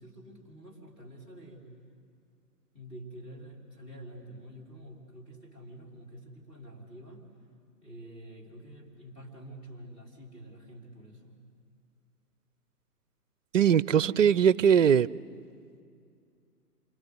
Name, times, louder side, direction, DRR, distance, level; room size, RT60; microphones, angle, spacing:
voice 1, 0.0-1.7 2.7-7.3 7.8-11.4, right 1 dB, 10° left, -1 dB, 3.5 m, -48 dB
voice 2, 13.5-15.1, right 8 dB, 55° right, 19 dB, 0.6 m, -21 dB
28.0 x 25.5 x 8.1 m, 2.4 s
figure-of-eight pair, 130°, 47 cm